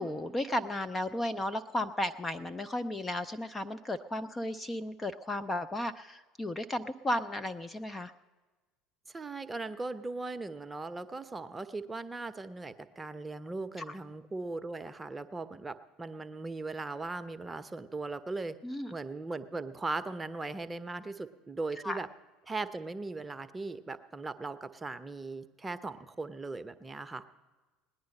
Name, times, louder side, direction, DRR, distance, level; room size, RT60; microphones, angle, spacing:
voice 1, 0.0-8.1 13.8-13.9 18.6-18.9 21.8-22.0, left 1 dB, 20° left, 15 dB, 0.5 m, -34 dB
voice 2, 9.1-18.6 18.9-22.1 22.5-27.2, right 3 dB, 15° right, 11 dB, 0.7 m, -39 dB
18.5 x 10.5 x 5.4 m, 1.3 s
figure-of-eight pair, 65°, 0 cm